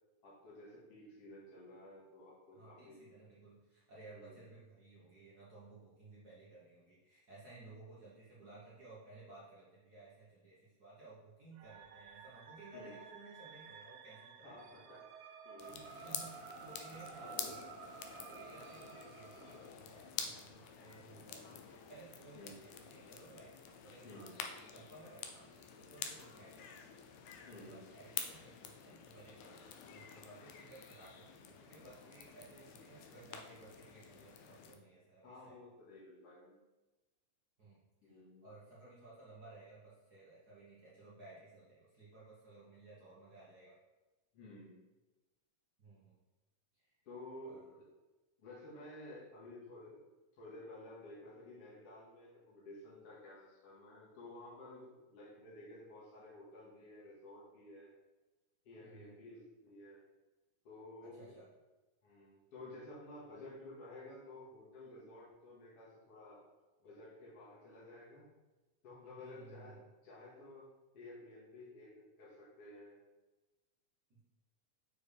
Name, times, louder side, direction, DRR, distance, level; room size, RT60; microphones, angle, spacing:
voice 1, 0.2-3.0 4.1-4.4 12.7-13.0 14.4-15.1 15.4-15.9 22.3-22.6 24.0-24.3 27.5-27.9 35.2-36.6 38.0-38.5 44.3-44.8 47.0-47.6 48.4-50.0 50.3-57.9 58.6-60.0 60.6-61.4 62.0-66.4 66.8-68.3 68.8-73.0, left 1 dB, 55° left, -7 dB, 2.7 m, -53 dB
voice 2, 2.5-14.8 15.7-23.5 23.8-25.5 25.7-26.7 27.6-35.6 37.6-43.7 45.8-46.1 46.7-47.0 47.4-47.8 58.8-59.1 61.0-61.5 69.2-69.8 74.1-74.2, right 2 dB, 50° right, -7 dB, 1.3 m, -57 dB
sound 1, 11.6-19.7, right 6 dB, 80° right, 1.5 m, -53 dB
sound 2, 15.6-34.8, left 7 dB, 80° left, 1.9 m, -49 dB
6.8 x 4.5 x 3.4 m, 1.1 s
omnidirectional pair, 3.3 m